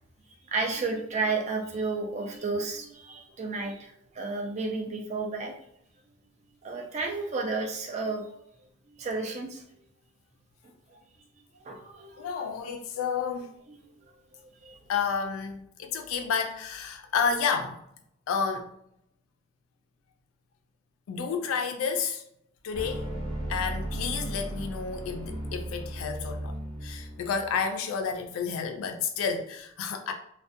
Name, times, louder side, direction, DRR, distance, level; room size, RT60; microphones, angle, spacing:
voice 1, 0.5-5.5 6.6-8.3 9.0-9.6 11.6-12.3 14.3-14.8, right 3 dB, 30° right, 0.4 m, -32 dB
voice 2, 12.2-13.5 14.9-17.8 18.3-18.7 21.1-22.2 22.6-23.1 23.5-26.5 26.8-30.1, left 6 dB, 75° left, 0.3 m, -30 dB
sound 1, 22.7-27.6, right 1 dB, 90° right, 1.0 m, -35 dB
2.4 x 2.1 x 2.5 m
head